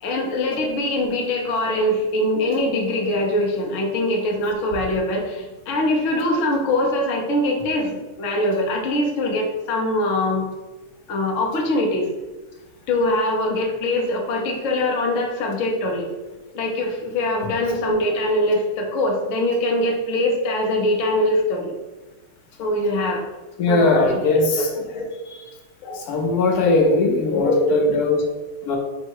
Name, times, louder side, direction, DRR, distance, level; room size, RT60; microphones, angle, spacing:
voice 1, 0.0-10.4 11.1-12.1 12.9-16.1 16.5-21.7 22.6-23.2 23.7-25.2 25.8-26.0 26.9-27.0 27.3-28.1, left 1 dB, 60° left, 1 dB, 0.9 m, -23 dB
voice 2, 23.6-24.7 26.1-28.2 28.6-28.8, left 2 dB, 80° left, 1 dB, 1.2 m, -19 dB
4.6 x 2.1 x 4.5 m, 1.2 s
omnidirectional pair, 1.7 m